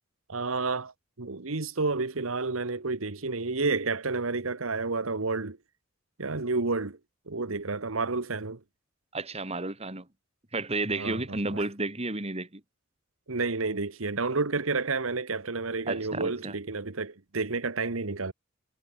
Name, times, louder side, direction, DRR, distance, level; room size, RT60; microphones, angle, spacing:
voice 1, 0.3-5.6 6.2-7.0 7.3-8.6 10.9-11.6 13.3-18.3, right 3 dB, 90° right, 1.4 m, -30 dB
voice 2, 9.1-10.1 10.5-12.6 15.9-16.6, right 2 dB, 30° right, 2.7 m, -32 dB
head